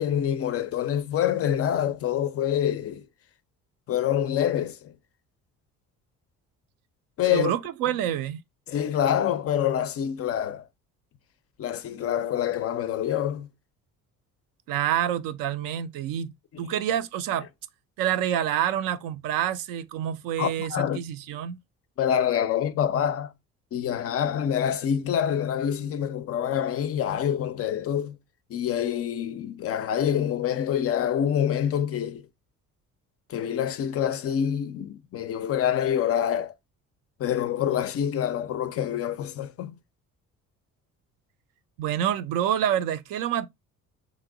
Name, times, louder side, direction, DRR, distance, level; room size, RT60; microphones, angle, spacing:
voice 1, 0.0-3.1 3.9-4.9 7.2-7.5 8.7-10.7 11.6-13.5 16.5-16.8 20.4-21.0 22.0-23.3 23.7-28.2 28.5-32.3 33.3-36.5 37.2-39.8, left 9 dB, 35° left, 0.4 m, -26 dB
voice 2, 7.3-8.4 14.7-16.3 16.6-17.5 18.0-21.6 41.8-43.5, right 10 dB, 50° right, 0.5 m, -27 dB
3.0 x 2.5 x 3.6 m
figure-of-eight pair, 50°, 42 cm